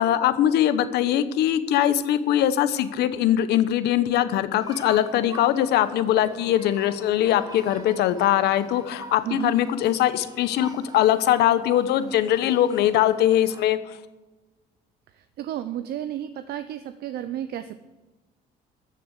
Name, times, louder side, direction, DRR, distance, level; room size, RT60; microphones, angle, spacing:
voice 1, 0.0-13.8, left 11 dB, 80° left, 12 dB, 1.0 m, -21 dB
sound 1, 4.6-13.7, right 2 dB, 20° right, 1.9 m, -45 dB
voice 2, 15.1-17.7, right 11 dB, 70° right, 11 dB, 0.8 m, -32 dB
14.0 x 6.9 x 8.2 m, 1.1 s
cardioid pair, 110°, 17 cm